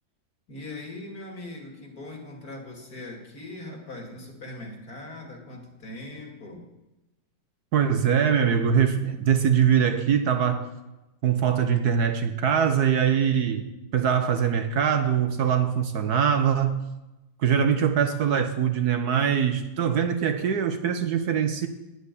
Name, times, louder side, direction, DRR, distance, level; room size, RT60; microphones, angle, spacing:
voice 1, 0.5-6.6, left 2 dB, 50° left, 2 dB, 2.7 m, -40 dB
voice 2, 7.7-10.7 11.2-13.7 13.9-16.8 17.4-21.7, right 8 dB, 60° right, 8 dB, 1.3 m, -23 dB
11.0 x 8.0 x 9.7 m, 0.99 s
omnidirectional pair, 2.0 m